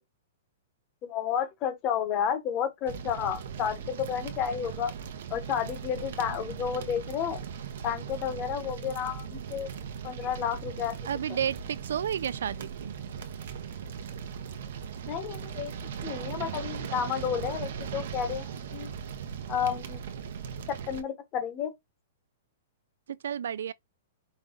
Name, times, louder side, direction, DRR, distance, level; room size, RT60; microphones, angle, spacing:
voice 1, 1.0-4.9 5.3-7.4 7.8-9.7 10.0-10.9 15.1-15.7 16.0-18.9 19.5-20.0 20.7-21.7, left 8 dB, 25° left, 1.1 m, -31 dB
sound 1, 2.9-21.0, right 7 dB, 65° right, 0.8 m, -38 dB
voice 2, 11.1-12.9 23.1-23.7, right 9 dB, 80° right, 0.3 m, -31 dB
5.3 x 2.3 x 3.7 m
hypercardioid pair, 160°, 0 cm